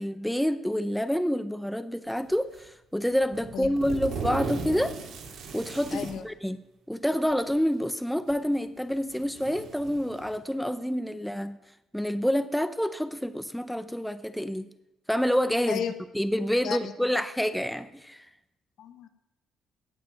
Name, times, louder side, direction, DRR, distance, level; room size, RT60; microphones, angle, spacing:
voice 1, 0.0-5.0 5.5-6.6 6.9-11.6 11.9-14.7 15.1-15.8 16.1-18.3, equal, ahead, 0.5 m, -28 dB
sound 1, 2.3-2.7 3.2-6.2 7.3-7.4 8.3-8.4 8.9-10.4, right 4 dB, 80° right, 2.9 m, -37 dB
voice 2, 5.9-6.3 15.7-15.9 16.6-16.9 18.8-19.1, left 8 dB, 70° left, 1.2 m, -33 dB
17.5 x 7.5 x 5.5 m
cardioid pair, 115°, 0 cm